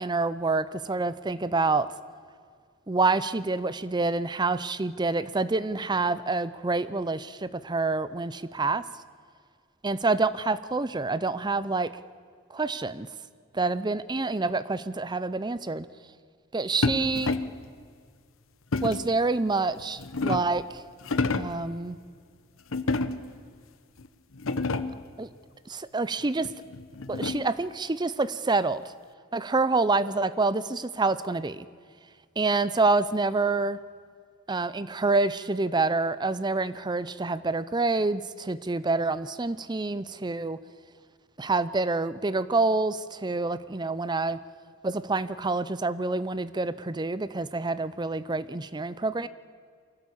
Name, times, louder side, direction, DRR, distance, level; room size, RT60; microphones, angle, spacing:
voice 1, 0.0-1.9 2.9-8.8 9.8-12.0 12.5-13.1 13.5-15.9 16.5-17.4 18.8-20.8 21.3-22.0 25.2-25.3 25.7-26.5 27.1-28.8 29.3-31.7 32.4-33.8 34.5-40.6 41.4-44.4 44.8-49.3, right 3 dB, 20° right, 16 dB, 0.6 m, -27 dB
sound 1, 16.8-17.6 18.7-19.2 19.8-20.6 21.0-21.6 22.7-23.4 24.0-24.1 24.3-25.1 26.4-27.6, left 3 dB, 70° left, 1.0 m, -29 dB
24.0 x 16.0 x 8.6 m, 2.1 s
head